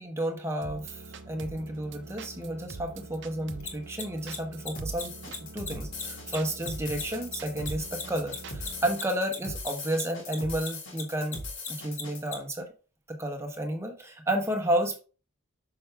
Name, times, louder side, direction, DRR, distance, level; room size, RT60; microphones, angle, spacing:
voice 1, 0.0-11.4 11.7-12.7 13.1-15.0, right 1 dB, 15° right, 3 dB, 1.1 m, -31 dB
sound 1, 0.6-9.0, right 3 dB, 55° right, 0.7 m, -44 dB
Mechanisms, 3.6-10.3 10.6-12.3, left 5 dB, 35° left, 1.5 m, -37 dB
sound 2, 4.8-12.2, left 2 dB, 60° left, 2.4 m, -40 dB
6.3 x 5.9 x 3.4 m, 0.35 s
head